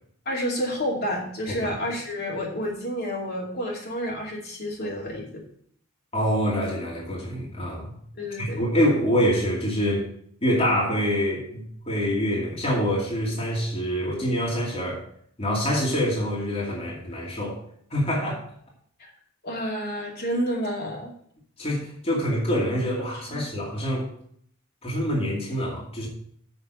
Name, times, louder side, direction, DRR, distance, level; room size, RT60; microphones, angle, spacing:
voice 1, 0.3-5.3 8.2-8.7 19.0-19.1 19.4-21.1 23.3-23.4, equal, 50° left, -2 dB, 2.6 m, -29 dB
voice 2, 6.1-8.0 8.4-10.1 10.4-15.0 15.4-17.6 17.9-18.4 21.6-24.1 24.8-26.1, equal, 30° left, -4 dB, 2.4 m, -25 dB
6.7 x 6.3 x 7.7 m, 0.64 s
head